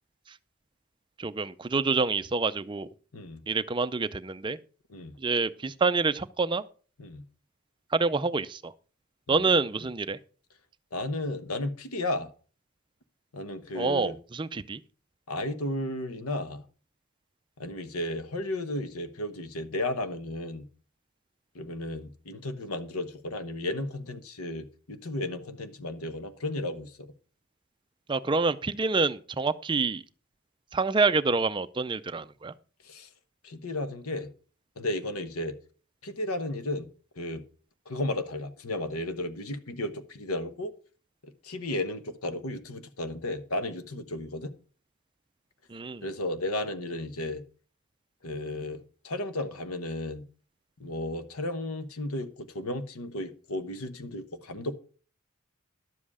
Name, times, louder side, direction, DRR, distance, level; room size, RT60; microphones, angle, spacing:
voice 1, 1.2-2.9 3.5-4.6 5.2-6.6 7.9-8.7 9.3-10.2 13.8-14.8 28.1-30.0 30.7-32.5 45.7-46.0, right 4 dB, 20° right, 0.4 m, -27 dB
voice 2, 10.9-12.3 13.3-14.2 15.3-16.6 17.6-20.7 21.5-27.1 32.8-33.1 33.4-34.3 34.8-35.5 36.0-36.9 37.2-37.4 37.9-40.7 41.2-44.5 46.0-47.4 48.2-50.2 50.8-54.8, left 1 dB, 80° left, 1.1 m, -34 dB
11.5 x 7.6 x 4.8 m
head